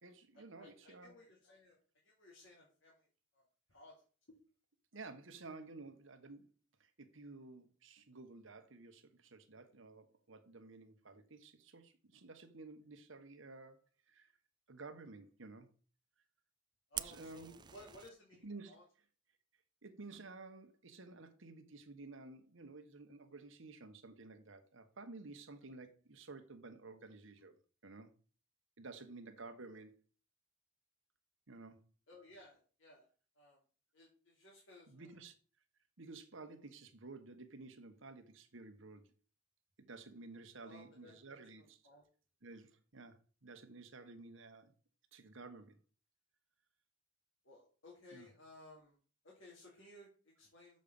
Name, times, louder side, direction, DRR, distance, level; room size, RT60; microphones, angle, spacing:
voice 1, 0.0-1.1 4.9-6.5 6.8-13.8 14.1-14.3 14.7-15.7 17.0-17.7 18.4-18.8 19.8-27.5 27.8-28.1 28.8-30.0 31.5-31.8 34.9-35.3 36.0-39.1 39.8-41.8 42.4-44.7 45.1-45.8 48.1-48.3, right 3 dB, 65° right, 1.3 m, -53 dB
voice 2, 0.6-1.8 2.0-3.1 3.3-3.4 3.7-3.9 16.9-18.8 32.1-33.1 33.3-33.6 33.9-35.1 40.6-42.0 47.4-49.0 49.2-50.8, left 1 dB, 75° left, 2.8 m, -59 dB
Fire, 16.9-18.1, right 9 dB, 20° right, 0.3 m, -45 dB
6.6 x 5.3 x 6.9 m
head